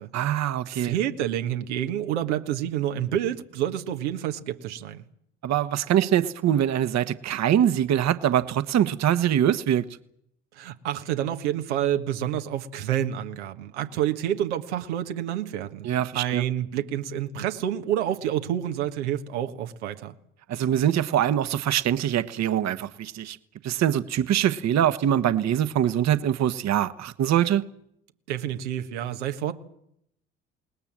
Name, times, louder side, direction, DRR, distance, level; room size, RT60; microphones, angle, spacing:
voice 1, 0.1-0.9 5.4-9.8 15.8-16.4 20.5-23.4 23.6-27.6, right 10 dB, 50° right, 1.3 m, -23 dB
voice 2, 0.7-5.0 10.5-15.9 16.1-20.1 28.3-29.5, right 11 dB, 85° right, 1.5 m, -28 dB
28.0 x 19.5 x 7.6 m
hypercardioid pair, 60°, 34 cm